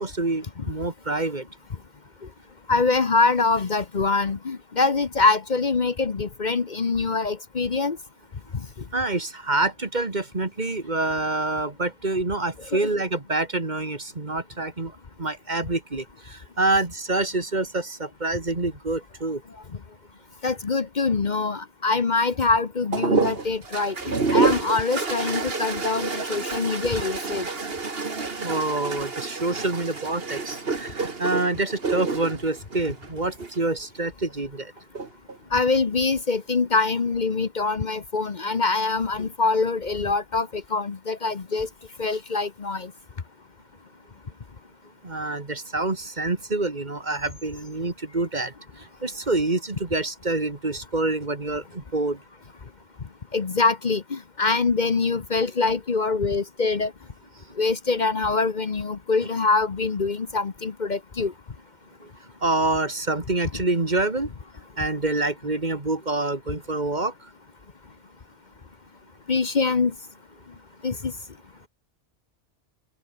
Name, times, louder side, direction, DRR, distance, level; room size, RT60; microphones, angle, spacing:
voice 1, 0.0-1.5 8.9-14.9 15.2-19.4 28.4-34.7 45.0-48.5 49.0-52.2 62.4-64.3 64.8-67.1, right 2 dB, 40° right, 2.2 m, -27 dB
voice 2, 2.7-8.0 12.7-12.8 20.4-27.5 35.5-41.7 42.0-42.9 53.3-56.9 57.6-61.3 69.3-69.9 70.8-71.1, left 4 dB, 40° left, 1.1 m, -24 dB
sound 1, 22.9-33.6 34.8-35.3, right 4 dB, 55° right, 2.3 m, -28 dB
omnidirectional pair, 1.2 m